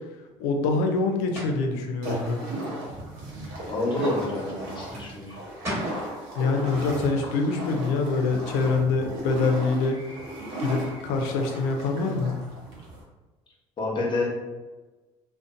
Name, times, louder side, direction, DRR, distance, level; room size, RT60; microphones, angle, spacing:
voice 1, 0.4-2.4 6.4-10.0 10.6-12.4, left 3 dB, 85° left, 4 dB, 0.4 m, -25 dB
sound 1, 1.3-1.7 5.3-5.4 5.6-6.0, equal, 20° right, 1.2 m, -32 dB
sound 2, 2.0-13.0, right 1 dB, 80° right, 0.7 m, -36 dB
voice 2, 3.7-5.4 13.8-14.3, left 2 dB, 35° left, -2 dB, 0.8 m, -28 dB
2.6 x 2.1 x 2.5 m, 1.2 s
supercardioid pair, 85°, 14 cm